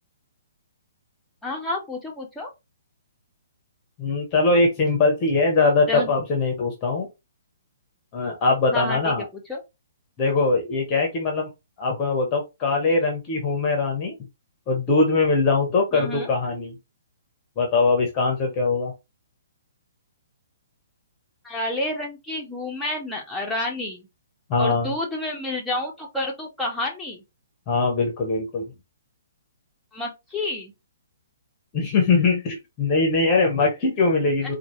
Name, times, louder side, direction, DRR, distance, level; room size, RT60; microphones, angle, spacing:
voice 1, 1.4-2.5 5.9-6.1 8.7-9.6 15.9-16.3 21.4-24.1 24.6-27.2 29.9-30.7, left 2 dB, 5° left, 1.2 m, -30 dB
voice 2, 4.0-7.1 8.1-9.2 10.2-11.5 11.8-14.1 14.7-16.8 17.6-18.9 24.5-24.9 27.7-28.7 31.7-34.6, left 3 dB, 25° left, 1.1 m, -21 dB
4.4 x 2.4 x 3.1 m
figure-of-eight pair, 125°, 0 cm